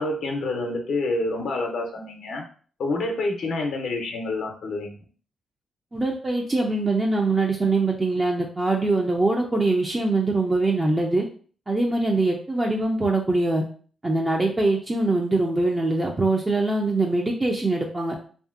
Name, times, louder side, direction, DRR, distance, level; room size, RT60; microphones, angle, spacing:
voice 1, 0.0-2.4 2.8-5.0, left 2 dB, 75° left, 2 dB, 0.5 m, -28 dB
voice 2, 5.9-11.2 11.7-13.6 14.0-18.2, right 2 dB, 30° right, 0 dB, 0.5 m, -23 dB
2.7 x 2.5 x 2.4 m, 0.43 s
supercardioid pair, 60°, 0 cm